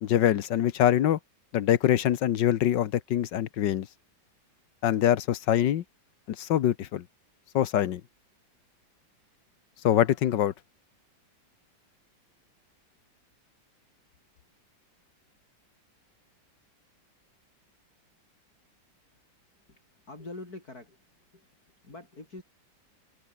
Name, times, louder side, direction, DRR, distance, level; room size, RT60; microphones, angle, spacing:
voice 1, 0.0-1.2 1.5-3.9 4.8-5.8 6.3-7.0 7.5-8.0 9.8-10.5, left 11 dB, 70° left, 1.6 m, -24 dB
voice 2, 19.7-22.4, left 2 dB, 50° left, 6.6 m, -45 dB
omnidirectional pair, 2.1 m